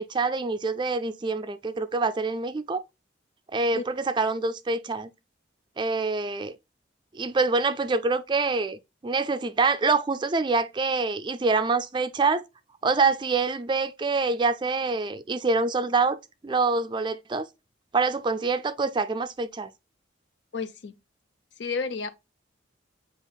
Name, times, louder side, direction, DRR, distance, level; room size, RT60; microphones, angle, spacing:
voice 1, 0.0-2.8 3.5-5.1 5.8-6.5 7.1-12.4 12.8-16.2 16.4-17.5 17.9-19.7, right 4 dB, 25° right, 0.4 m, -25 dB
voice 2, 20.5-21.0 21.6-22.1, left 4 dB, 65° left, 0.5 m, -31 dB
8.1 x 2.8 x 2.3 m
head